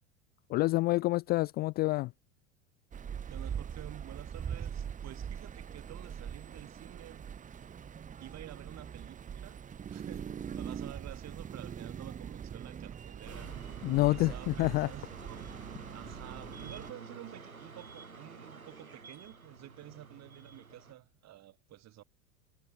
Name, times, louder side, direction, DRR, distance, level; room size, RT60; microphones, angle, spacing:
voice 1, 0.5-2.1 13.8-14.9, left 20 dB, 25° left, 0.3 m, -28 dB
sound 1, 2.9-16.9, right 8 dB, 20° right, 0.9 m, -42 dB
voice 2, 3.3-7.3 8.2-9.6 9.9-13.5 14.0-15.5 15.9-22.0, right 14 dB, 40° right, 4.5 m, -50 dB
sound 2, 13.2-20.9, right 4 dB, 90° right, 3.2 m, -50 dB
figure-of-eight pair, 80°, 41 cm